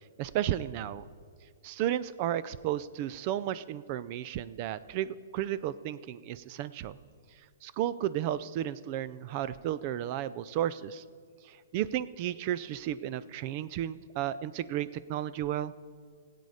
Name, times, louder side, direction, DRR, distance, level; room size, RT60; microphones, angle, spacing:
voice 1, 0.2-1.0 1.6-7.0 7.6-11.0 11.4-15.7, right 11 dB, 40° right, 17 dB, 0.4 m, -33 dB
18.0 x 8.3 x 5.0 m, 2.1 s
hypercardioid pair, 135°, 0 cm